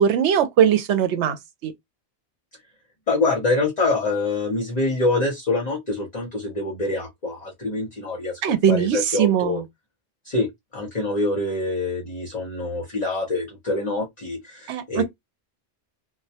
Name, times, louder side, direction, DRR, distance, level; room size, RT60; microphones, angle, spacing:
voice 1, 0.0-1.4 1.6-1.7 8.4-9.6 14.7-15.0, right 9 dB, 80° right, 0.9 m, -20 dB
voice 2, 3.1-8.4 8.7-9.6 10.2-10.5 10.7-15.0, left 2 dB, 40° left, 0.8 m, -25 dB
2.2 x 2.2 x 2.7 m
omnidirectional pair, 1.2 m